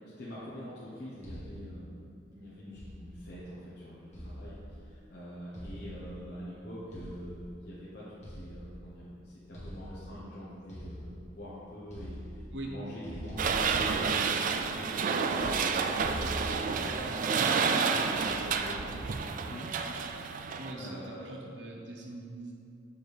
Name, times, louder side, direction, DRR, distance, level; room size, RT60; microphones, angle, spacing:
voice 1, 0.2-1.9 2.3-3.6 3.8-4.0 4.2-4.6 5.1-8.0 8.3-9.1 9.5-11.1 11.3-12.2 12.6-16.2 16.7-19.7 20.7-21.4, equal, 60° left, -9 dB, 1.0 m, -44 dB
sound 1, 1.2-1.8 2.8-3.3 4.1-4.9 5.5-6.3 6.9-7.5 8.2-9.0 9.5-10.2 10.7-11.5 11.8-12.7 13.0-14.5 16.0-16.9, equal, 40° left, 1.5 m, -43 dB
sound 2, 13.4-20.7, right 5 dB, 45° right, 0.3 m, -30 dB
voice 2, 20.6-22.5, right 2 dB, 70° right, 0 dB, 0.9 m, -42 dB
6.9 x 4.2 x 3.4 m, 2.5 s
head